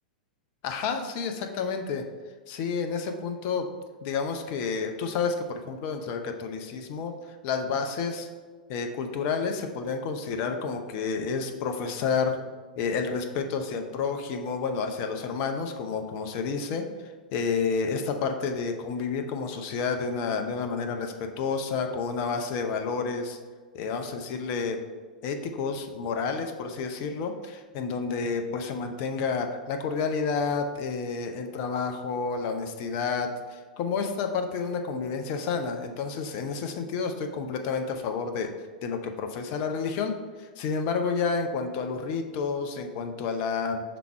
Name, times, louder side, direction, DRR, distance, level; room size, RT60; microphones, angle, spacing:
voice 1, 0.6-2.0 2.5-3.7 4.0-7.1 7.4-8.3 8.7-12.4 12.8-16.9 17.3-23.4 23.7-24.8 25.2-38.5 38.8-40.1 40.4-43.8, left 5 dB, 40° left, 6 dB, 0.6 m, -30 dB
5.9 x 3.5 x 4.5 m, 1.4 s
figure-of-eight pair, 95°, 5 cm